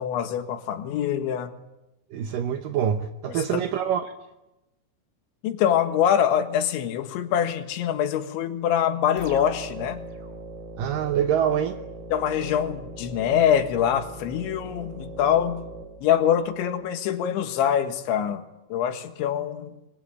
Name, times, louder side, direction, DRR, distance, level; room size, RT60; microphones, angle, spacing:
voice 1, 0.0-1.5 3.5-3.6 5.4-10.0 12.1-15.6 16.0-18.4 18.7-19.7, left 9 dB, 90° left, 7 dB, 4.0 m, -24 dB
voice 2, 2.1-4.1 10.8-11.8, right 9 dB, 70° right, 7 dB, 2.2 m, -25 dB
sound 1, 9.2-16.7, right 1 dB, 25° right, 3.7 m, -40 dB
28.0 x 22.0 x 8.8 m, 0.99 s
omnidirectional pair, 5.1 m